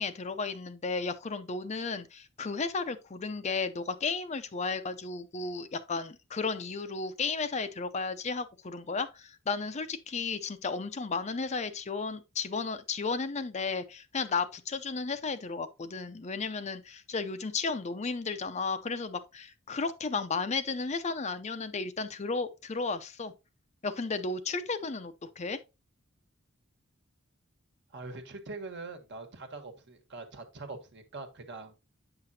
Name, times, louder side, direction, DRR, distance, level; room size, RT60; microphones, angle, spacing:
voice 1, 0.0-23.3 23.8-25.6, left 4 dB, 35° left, 0.5 m, -34 dB
voice 2, 27.9-31.7, right 3 dB, 55° right, 1.4 m, -43 dB
8.7 x 5.8 x 2.8 m
head